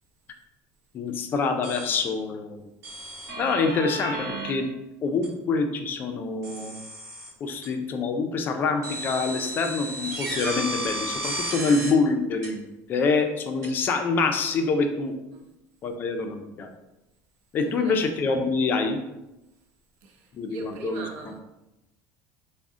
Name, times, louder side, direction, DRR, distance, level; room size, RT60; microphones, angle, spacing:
voice 1, 0.9-2.7 3.4-4.7 5.0-6.8 7.4-15.1 15.8-16.7 17.5-19.0 20.3-21.0, left 4 dB, 30° left, 5 dB, 0.3 m, -26 dB
sound 1, 1.6-2.0 2.8-4.5 5.2-5.3 6.4-7.3 7.6-7.7 8.8-11.9 12.4-12.5 13.6-13.7, right 1 dB, 45° right, 1.1 m, -33 dB
voice 2, 17.6-18.0 20.0-21.4, right 3 dB, 90° right, 3 dB, 0.6 m, -41 dB
3.6 x 2.0 x 3.6 m, 0.96 s
cardioid pair, 160°, 6 cm